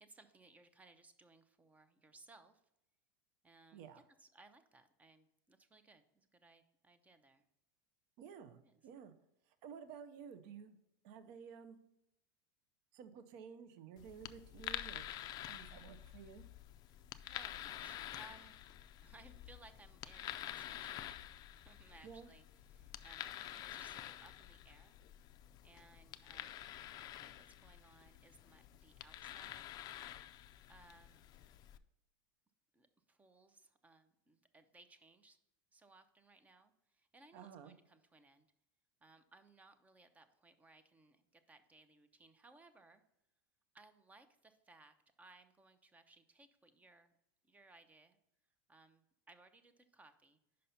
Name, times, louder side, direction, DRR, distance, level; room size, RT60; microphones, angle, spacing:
voice 1, 0.0-2.6 3.4-7.4 8.6-8.8 16.9-18.7 19.0-21.2 21.6-25.0 25.6-26.6 27.0-29.7 30.7-31.3 32.7-35.4 35.7-38.5 39.0-43.0 43.7-47.1 47.4-48.2 48.7-50.4, right 2 dB, 15° right, 11 dB, 0.6 m, -63 dB
voice 2, 3.7-4.0 8.2-9.1 9.5-10.8 11.0-11.8 12.9-15.0 15.5-16.4 22.0-22.3 37.3-37.7, right 7 dB, 55° right, 11 dB, 0.6 m, -53 dB
sound 1, 14.0-31.8, left 12 dB, 35° left, 0.4 m, -49 dB
5.4 x 5.2 x 5.6 m, 0.82 s
supercardioid pair, 130°, 12 cm